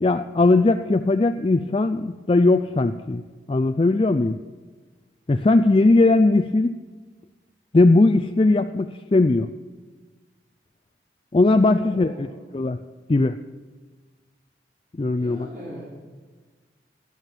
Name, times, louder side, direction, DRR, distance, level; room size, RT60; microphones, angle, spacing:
voice 1, 0.0-3.2 3.5-4.4 5.3-6.8 7.7-9.5 11.3-12.3 12.5-12.8 13.1-13.4 15.0-15.5, left 2 dB, 30° left, 9 dB, 0.4 m, -19 dB
voice 2, 11.6-12.4 15.1-15.9, right 1 dB, 50° right, -7 dB, 4.5 m, -40 dB
16.0 x 11.0 x 7.2 m, 1.4 s
head